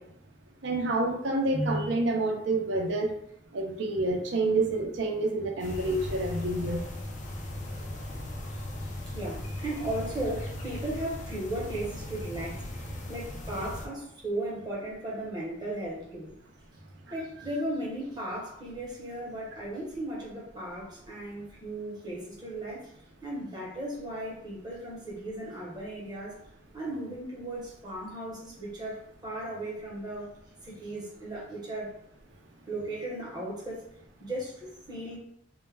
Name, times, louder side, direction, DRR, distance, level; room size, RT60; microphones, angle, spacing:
voice 1, 0.6-3.1 3.5-6.8, right 2 dB, 65° right, 2 dB, 0.5 m, -28 dB
sound 1, 5.6-13.9, left 1 dB, 40° left, 0.4 m, -38 dB
voice 2, 8.5-16.3 17.1-22.9 23.2-26.4 26.7-30.3 30.6-31.9 32.7-33.8 34.2-35.2, right 1 dB, 20° right, -5 dB, 0.8 m, -36 dB
2.2 x 2.1 x 3.2 m, 0.71 s
head